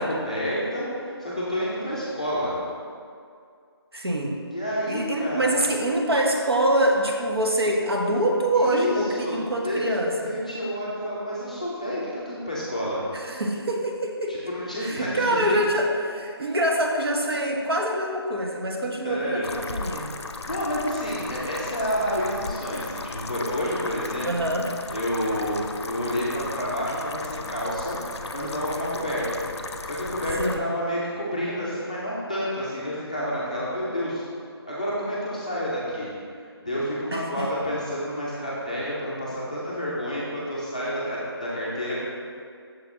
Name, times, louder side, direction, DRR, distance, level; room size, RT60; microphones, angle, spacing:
voice 1, 0.0-2.6 4.5-5.6 8.5-8.9 9.2-9.4 9.6-13.0 14.3-15.4 19.0-19.5 20.4-24.5 24.9-28.0 28.3-34.2 34.6-36.1 36.4-42.0, equal, 15° left, -8 dB, 0.6 m, -29 dB
voice 2, 3.9-4.4 4.9-10.1 13.1-14.4 14.8-20.1 24.2-24.7 30.4-30.6 37.1-37.5, right 1 dB, 65° right, 1 dB, 0.8 m, -25 dB
sound 1, 19.4-30.6, left 3 dB, 85° left, 0.5 m, -36 dB
6.5 x 4.4 x 3.6 m, 2.3 s
figure-of-eight pair, 180°, 14 cm